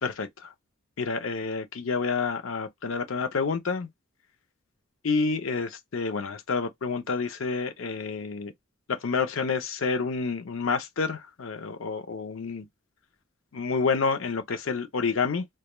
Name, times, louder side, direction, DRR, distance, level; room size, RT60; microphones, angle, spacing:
voice 1, 0.0-0.5 1.0-3.9 5.0-8.5 8.9-12.7 13.5-15.5, left 4 dB, 70° left, 0.6 m, -29 dB
2.2 x 2.2 x 2.9 m
head